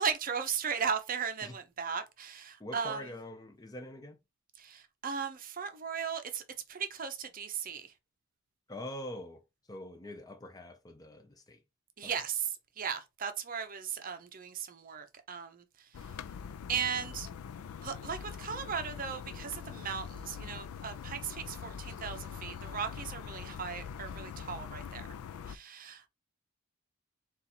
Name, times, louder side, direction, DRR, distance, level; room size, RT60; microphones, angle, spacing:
voice 1, 0.0-3.1 4.6-6.4 6.7-7.9 12.0-15.6 16.7-17.3 17.8-25.1 25.5-26.1, right 7 dB, 40° right, 0.6 m, -37 dB
voice 2, 2.6-4.2 8.7-9.4 9.7-11.6 12.0-12.1, left 1 dB, 20° left, 0.6 m, -44 dB
sound 1, 15.9-25.6, left 7 dB, 90° left, 0.4 m, -43 dB
4.0 x 2.4 x 4.2 m
head